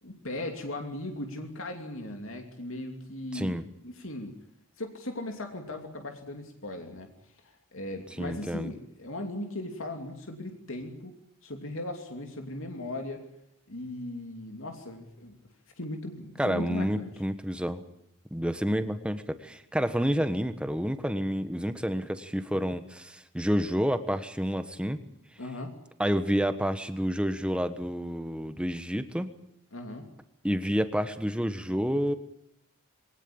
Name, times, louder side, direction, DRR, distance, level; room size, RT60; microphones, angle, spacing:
voice 1, 0.0-3.6 3.8-4.3 4.8-7.1 7.4-11.1 11.4-13.3 13.7-15.4 15.8-17.1 25.4-25.7 29.7-30.1, left 1 dB, 65° left, 4 dB, 2.8 m, -38 dB
voice 2, 3.3-3.6 8.2-8.7 16.4-17.8 18.3-25.0 26.0-29.3 30.4-32.1, equal, 5° right, 10 dB, 1.3 m, -29 dB
22.5 x 18.5 x 8.7 m, 0.78 s
head